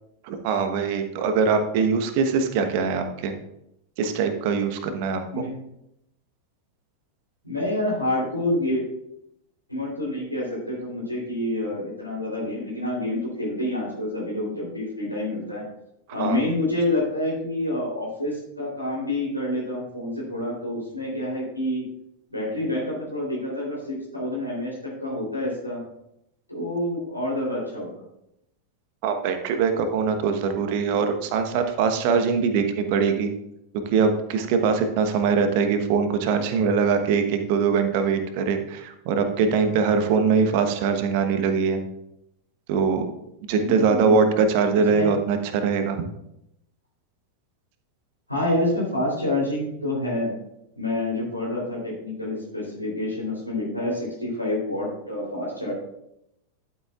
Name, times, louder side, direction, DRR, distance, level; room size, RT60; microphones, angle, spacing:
voice 1, 0.2-3.3 4.0-5.4 16.2-16.4 29.0-33.3 33.9-41.8 42.7-43.1 43.5-46.0, right 5 dB, 45° right, 7 dB, 1.1 m, -22 dB
voice 2, 5.3-5.6 7.4-8.8 9.7-15.7 16.1-21.8 22.3-25.8 26.5-27.9 43.6-44.2 44.9-45.2 48.3-50.4 50.8-55.7, left 1 dB, 90° left, -6 dB, 3.4 m, -28 dB
11.5 x 8.1 x 2.4 m, 0.81 s
figure-of-eight pair, 90°, 0 cm